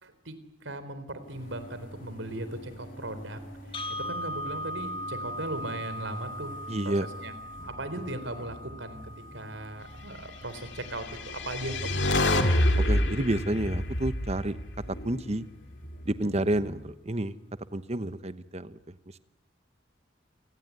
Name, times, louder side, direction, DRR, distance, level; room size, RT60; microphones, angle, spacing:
voice 1, 0.0-3.4 3.9-6.6 6.8-6.9 7.2-7.3 7.7-9.0 9.3-12.1, right 1 dB, 85° right, 11 dB, 3.9 m, -38 dB
sound 1, 1.2-16.9, equal, 50° left, 5.5 m, -47 dB
sound 2, 3.7-11.8, equal, 30° left, 2.4 m, -40 dB
voice 2, 6.7-7.1 12.8-14.6 15.0-15.4 16.1-17.4 17.7-18.9, right 1 dB, 35° right, 13 dB, 1.1 m, -30 dB
sound 3, 11.0-15.3, left 1 dB, 70° left, 2.5 m, -27 dB
29.5 x 19.0 x 9.6 m, 0.84 s
head